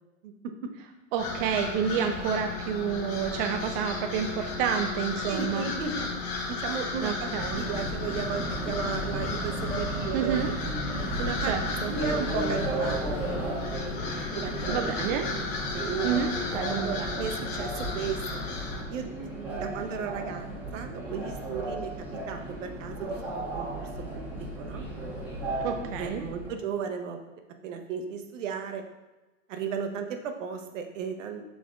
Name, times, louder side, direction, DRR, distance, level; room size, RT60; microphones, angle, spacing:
voice 1, 1.1-5.7 7.0-7.6 10.1-10.5 11.5-11.9 14.7-15.3 16.0-16.9 25.6-26.2, right 7 dB, 45° right, 4 dB, 0.5 m, -29 dB
sound 1, 1.2-18.8, left 4 dB, 50° left, 1.0 m, -34 dB
voice 2, 5.2-6.1 6.5-7.3 7.6-10.4 11.2-11.5 11.9-13.5 14.3-15.0 15.7-16.1 16.7-18.4 18.9-20.5 20.7-24.9 26.0-27.2 27.6-28.8 29.5-31.4, right 6 dB, 70° right, 5 dB, 0.8 m, -35 dB
Subway metro underground, 7.3-26.5, right 1 dB, 5° right, 1.2 m, -34 dB
6.0 x 3.5 x 2.4 m, 1.1 s
hypercardioid pair, 105°, 39 cm